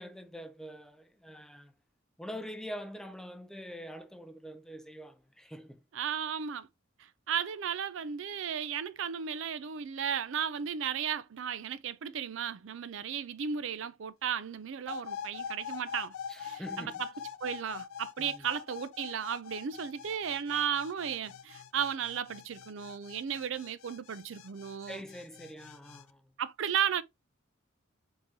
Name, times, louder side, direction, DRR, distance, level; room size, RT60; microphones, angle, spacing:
voice 1, 0.0-1.7 2.2-5.8 16.3-17.0 18.2-18.4 24.9-26.3, equal, 5° left, 0.4 m, -44 dB
voice 2, 5.9-6.7 7.3-17.1 17.4-25.0 26.4-27.0, right 8 dB, 65° right, 0.4 m, -35 dB
sound 1, 14.9-26.0, left 8 dB, 75° left, 0.3 m, -44 dB
4.1 x 3.7 x 2.9 m
head